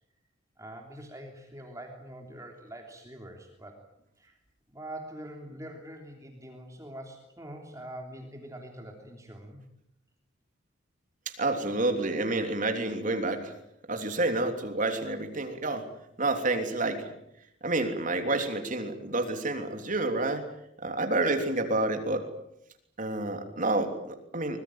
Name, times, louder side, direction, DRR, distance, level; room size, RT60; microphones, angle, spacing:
voice 1, 0.6-3.8 4.2-4.4 4.7-9.6 18.2-18.3, right 1 dB, 15° right, 2 dB, 3.2 m, -44 dB
voice 2, 11.2-13.5 13.9-15.9 16.2-17.1 17.6-20.5 20.8-22.3 23.0-24.6, right 2 dB, 40° right, 6 dB, 3.3 m, -29 dB
24.5 x 22.0 x 9.0 m, 0.77 s
head